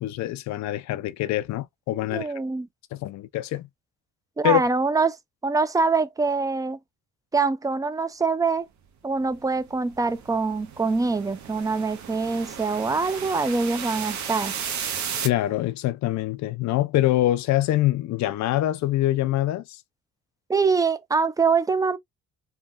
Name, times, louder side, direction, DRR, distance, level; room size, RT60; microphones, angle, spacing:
voice 1, 0.0-2.3 2.9-3.7 4.4-4.6 15.2-19.8, left 14 dB, 65° left, 0.5 m, -24 dB
voice 2, 2.1-2.7 4.4-5.2 5.4-6.8 7.3-8.7 9.0-14.5 20.5-22.0, right 4 dB, 10° right, 0.4 m, -24 dB
sound 1, 9.3-15.3, right 8 dB, 70° right, 0.8 m, -34 dB
3.3 x 2.2 x 2.4 m
cardioid pair, 90°, 30 cm